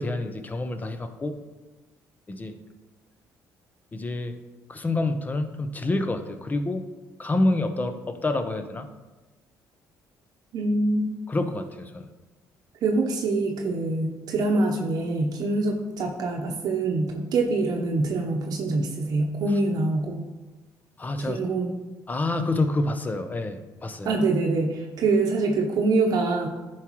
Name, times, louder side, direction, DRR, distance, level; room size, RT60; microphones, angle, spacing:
voice 1, 0.0-1.4 2.3-2.6 3.9-4.4 4.7-6.8 7.2-8.9 11.3-12.1 21.0-21.4 22.1-24.2, left 2 dB, 25° left, 8 dB, 0.7 m, -27 dB
voice 2, 10.5-11.2 12.8-20.2 21.3-21.7 24.0-26.5, right 3 dB, 65° right, 2 dB, 0.8 m, -25 dB
10.5 x 4.7 x 3.1 m, 1.2 s
cardioid pair, 95°, 7 cm